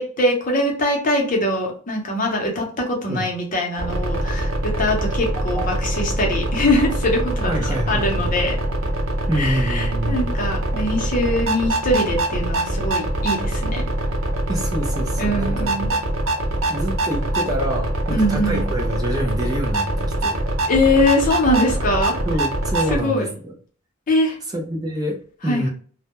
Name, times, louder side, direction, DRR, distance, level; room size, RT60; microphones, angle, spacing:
voice 1, 0.0-8.6 9.4-13.8 15.2-15.9 18.1-18.6 20.7-22.1 22.9-23.3 24.1-24.4 25.4-25.7, left 1 dB, 40° left, 0 dB, 0.7 m, -22 dB
sound 1, 3.8-23.0, right 1 dB, 85° right, 0.6 m, -24 dB
voice 2, 7.5-8.3 9.3-10.2 14.5-16.0 16.7-20.4 22.3-23.5 24.5-25.7, equal, 20° right, 1 dB, 0.4 m, -27 dB
2.2 x 2.1 x 2.9 m, 0.43 s
head